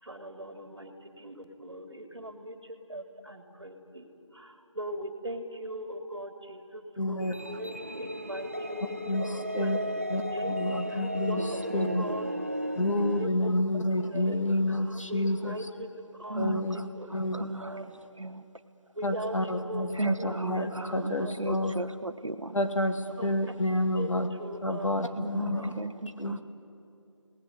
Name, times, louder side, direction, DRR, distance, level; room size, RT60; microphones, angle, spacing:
voice 1, 0.0-10.0 10.3-10.6 10.9-12.3 12.9-13.5 14.1-14.4 14.7-15.9 16.1-17.1 17.6-17.8 18.9-21.3 23.2-23.6 23.9-24.1 24.4-25.0 25.5-25.7, right 1 dB, 55° right, 5 dB, 3.4 m, -40 dB
voice 2, 7.0-7.3 9.1-9.8 10.1-11.4 11.7-12.1 12.8-15.6 16.4-16.8 17.1-17.6 19.0-21.8 22.5-24.3 24.6-25.8 26.2-26.4, left 1 dB, 75° left, 6 dB, 2.5 m, -29 dB
sound 1, 7.2-13.3, equal, 25° right, 0.6 m, -35 dB
voice 3, 11.8-12.2 16.3-16.6 17.1-17.7 18.2-18.4 20.0-21.1 21.4-22.5 25.2-26.4, right 2 dB, 75° right, 9 dB, 1.7 m, -35 dB
30.0 x 19.0 x 9.7 m, 2.6 s
figure-of-eight pair, 170°, 16 cm